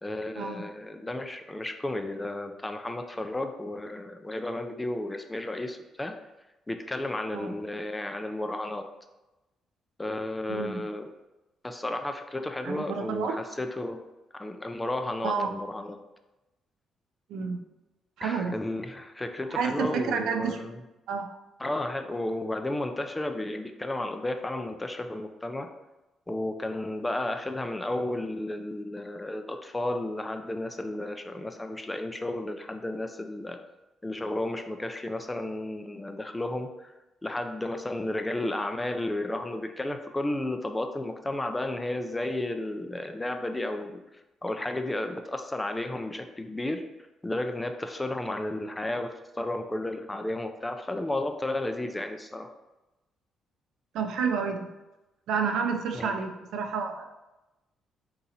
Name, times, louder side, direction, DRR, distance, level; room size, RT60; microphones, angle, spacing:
voice 1, 0.0-6.1 6.7-8.8 10.0-11.0 11.6-14.0 14.3-16.0 18.2-20.8 21.6-25.7 26.3-33.6 34.0-36.9 37.2-44.0 44.4-46.8 47.2-52.5 55.9-56.2, left 1 dB, 15° left, 6 dB, 0.4 m, -33 dB
voice 2, 10.5-10.8 12.6-13.3 15.2-15.5 17.3-17.6 18.2-18.6 19.5-20.7 21.1-21.3 53.9-54.7 55.3-57.0, right 6 dB, 80° right, 5 dB, 0.5 m, -30 dB
3.8 x 2.9 x 4.1 m, 1.0 s
cardioid pair, 90°, 0 cm